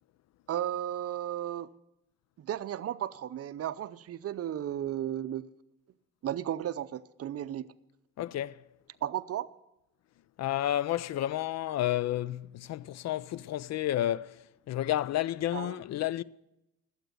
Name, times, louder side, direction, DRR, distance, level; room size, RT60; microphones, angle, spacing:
voice 1, 0.5-1.7 2.4-5.5 6.2-7.7 9.0-9.5 15.5-15.8, right 11 dB, 50° right, 0.6 m, -34 dB
voice 2, 8.2-8.6 10.4-16.2, left 13 dB, 60° left, 0.4 m, -31 dB
13.0 x 8.0 x 8.1 m
cardioid pair, 90°, 30 cm